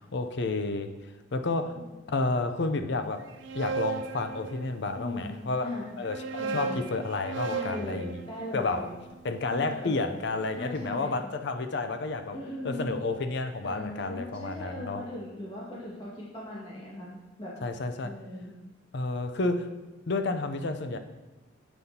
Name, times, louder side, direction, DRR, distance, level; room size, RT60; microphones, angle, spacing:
voice 1, 0.1-0.9 1.3-1.8 2.1-3.3 3.5-5.7 6.0-8.1 8.5-8.9 9.2-12.4 12.6-15.1 17.6-18.1 18.9-19.7 20.1-21.0, left 3 dB, 65° left, 8 dB, 0.6 m, -30 dB
sound 1, 3.2-5.1 5.9-10.0, right 5 dB, 75° right, 0.5 m, -37 dB
voice 2, 4.9-5.3 5.6-5.9 6.4-6.7 7.4-9.0 9.5-10.0 10.5-11.1 12.3-13.0 13.6-17.1 17.4-17.5 18.0-18.5 20.9-21.0, left 1 dB, 30° left, -6 dB, 1.8 m, -38 dB
9.5 x 7.1 x 2.8 m, 1.1 s
head